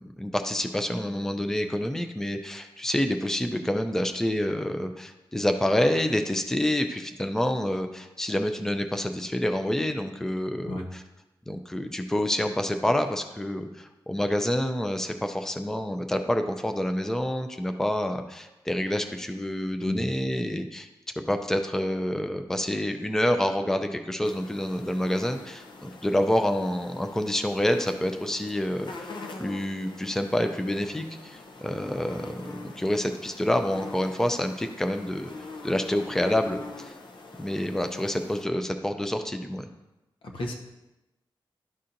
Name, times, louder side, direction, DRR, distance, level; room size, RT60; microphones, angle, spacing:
voice 1, 0.0-11.0 11.5-20.9 21.3-35.3 35.6-36.9 37.4-39.6, left 1 dB, 5° left, 6 dB, 0.4 m, -28 dB
sound 1, 24.2-38.4, left 3 dB, 60° left, 0.7 m, -44 dB
voice 2, 40.2-40.5, left 1 dB, 80° left, 2 dB, 1.0 m, -32 dB
12.0 x 4.2 x 2.6 m, 0.98 s
wide cardioid pair, 170°, 9 cm